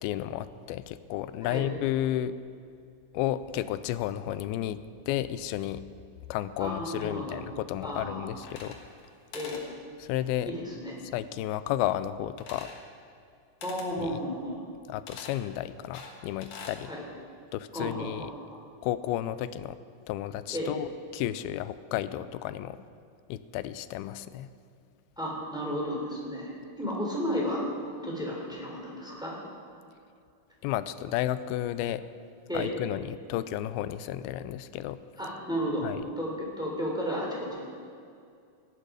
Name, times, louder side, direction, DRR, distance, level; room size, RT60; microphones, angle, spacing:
voice 1, 0.0-2.3 3.1-5.8 6.3-8.8 10.0-10.5 11.1-12.7 14.0-14.2 14.9-16.9 17.5-18.3 18.8-19.8 20.1-20.9 21.1-22.8 23.3-24.5 30.6-32.0 32.5-35.0 35.8-36.0, left 12 dB, 90° left, 14 dB, 2.4 m, -32 dB
voice 2, 6.6-7.4 7.8-8.3 9.3-9.6 10.4-10.9 13.6-14.6 16.8-17.0 17.7-18.3 20.5-20.7 25.2-27.6 28.0-29.3 32.5-32.7 35.2-35.9 36.2-37.7, equal, ahead, -4 dB, 3.0 m, -33 dB
sound 1, 8.4-9.1 9.3-9.7 12.4-12.9 13.6-13.9 15.1-15.4 15.9-16.8, left 5 dB, 60° left, 2.5 m, -44 dB
18.0 x 13.0 x 5.0 m, 2.3 s
omnidirectional pair, 4.3 m